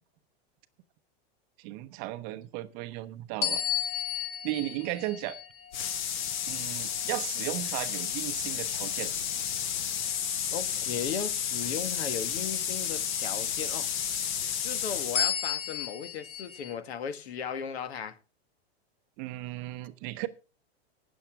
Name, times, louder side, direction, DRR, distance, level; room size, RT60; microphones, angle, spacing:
voice 1, 1.6-3.6 4.4-5.4 6.5-9.1 19.2-20.3, right 16 dB, 25° right, 0.6 m, -35 dB
sound 1, 3.4-8.1 8.7-9.0 15.1-16.7, left 9 dB, 20° left, 1.2 m, -34 dB
sound 2, 5.7-15.3, left 8 dB, 45° left, 1.2 m, -32 dB
voice 2, 10.5-13.9 14.6-18.2, left 7 dB, 80° left, 1.6 m, -36 dB
18.0 x 7.1 x 4.5 m
supercardioid pair, 170°, 32 cm